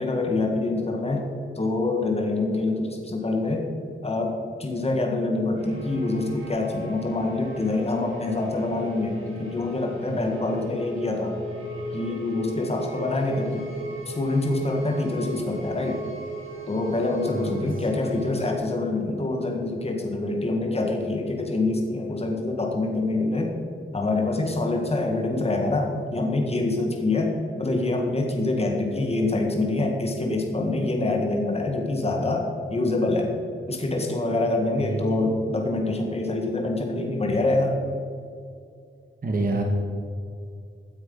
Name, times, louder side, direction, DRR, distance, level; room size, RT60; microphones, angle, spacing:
voice 1, 0.0-3.7 4.0-11.4 11.9-13.7 14.1-16.0 16.7-23.5 23.9-33.3 33.7-37.8, left 2 dB, 30° left, 2 dB, 1.8 m, -25 dB
sound 1, 5.6-18.5, right 1 dB, 80° right, 4.1 m, -37 dB
voice 2, 17.3-17.7 34.8-35.2 39.2-39.6, right 2 dB, 45° right, 1 dB, 1.9 m, -28 dB
16.5 x 9.5 x 5.5 m, 2.3 s
wide cardioid pair, 175°, 21 cm